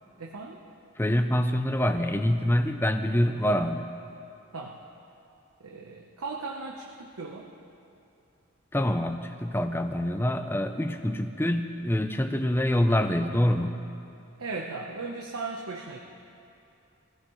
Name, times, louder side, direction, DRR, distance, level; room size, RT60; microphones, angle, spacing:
voice 1, 0.2-0.6 4.5-4.8 5.6-7.5 14.4-16.0, right 3 dB, 90° right, -1 dB, 1.1 m, -37 dB
voice 2, 1.0-3.9 8.7-13.8, left 1 dB, 10° left, 7 dB, 0.6 m, -25 dB
23.5 x 15.5 x 3.2 m, 2.7 s
head